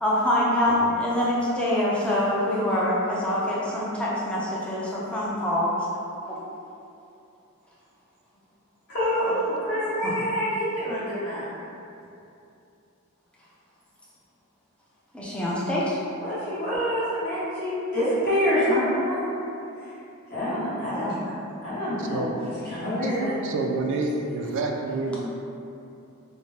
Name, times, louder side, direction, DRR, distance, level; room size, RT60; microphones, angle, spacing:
voice 1, 0.0-5.7 6.3-6.4 10.0-10.1 15.1-16.0 21.0-21.1, left 1 dB, 5° left, -7 dB, 0.4 m, -25 dB
voice 2, 8.9-11.4 16.2-19.3 19.8-19.9 20.3-21.0 21.6-22.3 22.6-23.3, equal, 50° left, -12 dB, 1.3 m, -26 dB
voice 3, 22.0-22.3 23.0-23.1 23.4-25.2, right 3 dB, 60° right, 1 dB, 0.3 m, -28 dB
3.2 x 2.1 x 2.7 m, 2.7 s
head